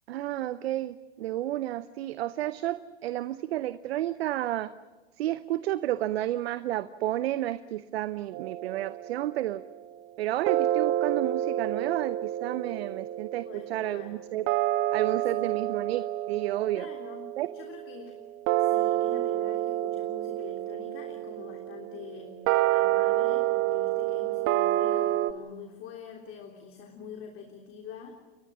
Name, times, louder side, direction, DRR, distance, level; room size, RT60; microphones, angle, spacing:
voice 1, 0.1-4.7 5.2-9.6 10.2-14.5 14.9-16.9 17.4-17.5, right 14 dB, 70° right, 14 dB, 0.9 m, -31 dB
sound 1, 8.3-9.7 10.5-25.3, right 14 dB, 40° right, 1.2 m, -29 dB
voice 2, 13.4-14.2 16.7-18.2 18.6-22.4 22.7-28.2, left 7 dB, 40° left, 3 dB, 3.4 m, -45 dB
29.5 x 23.0 x 6.2 m, 1.3 s
hypercardioid pair, 100°, 32 cm